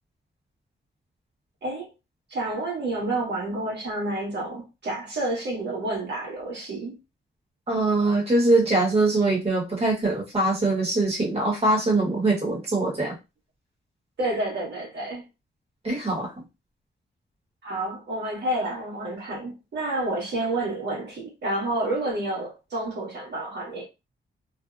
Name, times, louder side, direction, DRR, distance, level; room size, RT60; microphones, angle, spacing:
voice 1, 2.3-7.0 14.2-15.2 17.6-23.9, right 2 dB, 65° right, 1.2 m, -29 dB
voice 2, 7.7-13.2 15.8-16.3, right 2 dB, 30° right, 1.2 m, -22 dB
2.6 x 2.1 x 2.5 m
wide cardioid pair, 120°, 20 cm